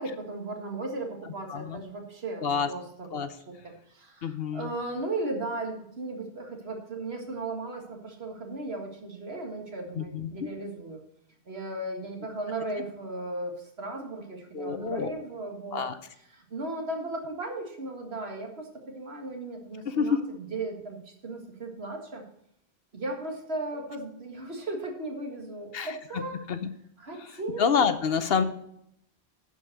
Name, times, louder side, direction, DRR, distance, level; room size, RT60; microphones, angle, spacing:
voice 1, 0.0-3.1 3.5-11.0 11.5-15.9 16.3-22.2 22.9-26.4 27.0-27.8, right 2 dB, 70° right, 3 dB, 2.1 m, -36 dB
voice 2, 1.5-1.8 2.4-2.7 3.1-3.3 4.2-4.7 9.9-10.5 14.5-15.1 15.7-16.0 19.8-20.2 25.7-26.2 26.5-26.7 27.6-28.4, left 6 dB, 65° left, 11 dB, 1.0 m, -27 dB
11.0 x 5.3 x 6.5 m, 0.74 s
omnidirectional pair, 1.1 m